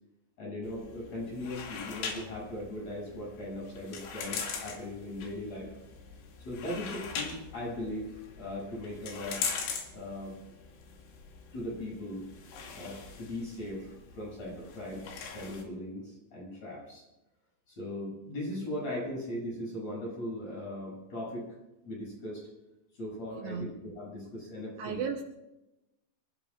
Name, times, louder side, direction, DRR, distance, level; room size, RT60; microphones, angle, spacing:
voice 1, 0.4-5.7 6.5-9.4 9.9-10.4 11.5-12.3 12.7-17.0 17.7-21.5 21.9-22.4 23.0-25.0, left 1 dB, 35° left, -4 dB, 8.7 m, -39 dB
sound 1, 0.6-15.6, left 5 dB, 90° left, 4.8 m, -42 dB
voice 2, 23.4-23.7 24.8-25.2, right 6 dB, 70° right, 1 dB, 3.0 m, -34 dB
27.0 x 17.5 x 2.5 m, 0.94 s
omnidirectional pair, 5.3 m